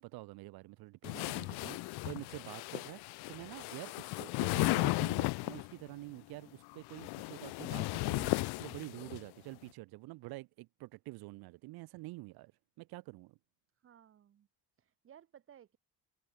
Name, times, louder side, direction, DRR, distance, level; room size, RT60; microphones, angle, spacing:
voice 1, 0.0-12.5 12.8-13.4, right 21 dB, 70° right, 0.6 m, -48 dB
sound 1, 1.0-5.7 6.7-9.2, left 23 dB, 85° left, 0.5 m, -35 dB
voice 2, 1.1-1.9 13.8-14.5 14.8-15.8, right 9 dB, 35° right, 1.5 m, -59 dB
cardioid pair, 175°, 38 cm